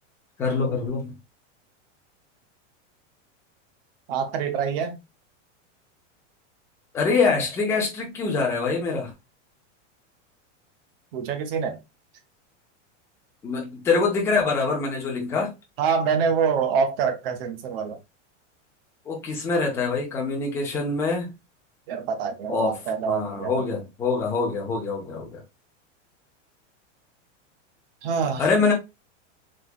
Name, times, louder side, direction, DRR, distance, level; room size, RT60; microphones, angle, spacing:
voice 1, 0.4-1.1 6.9-9.1 13.4-15.5 19.1-21.3 22.5-22.8 23.0-25.4 28.4-28.7, left 4 dB, 10° left, 0.4 m, -24 dB
voice 2, 4.1-5.0 11.1-11.8 15.8-18.0 21.9-23.6 28.0-28.5, right 6 dB, 50° right, 0.7 m, -25 dB
3.6 x 2.8 x 2.3 m
supercardioid pair, 165°, 37 cm